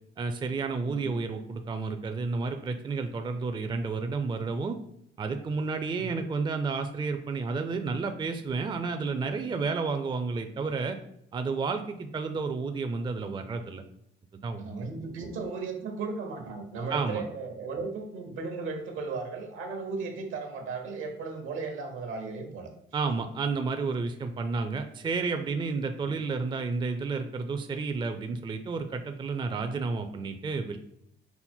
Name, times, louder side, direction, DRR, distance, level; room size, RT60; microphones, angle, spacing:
voice 1, 0.2-4.8 5.2-11.0 11.3-13.8 14.3-14.9 16.9-17.2 22.9-30.8, right 4 dB, 25° right, 7 dB, 0.4 m, -31 dB
voice 2, 0.8-1.2 6.0-6.2 14.6-22.7, right 4 dB, 80° right, 5 dB, 0.9 m, -36 dB
5.6 x 2.1 x 4.3 m, 0.73 s
cardioid pair, 90°, 20 cm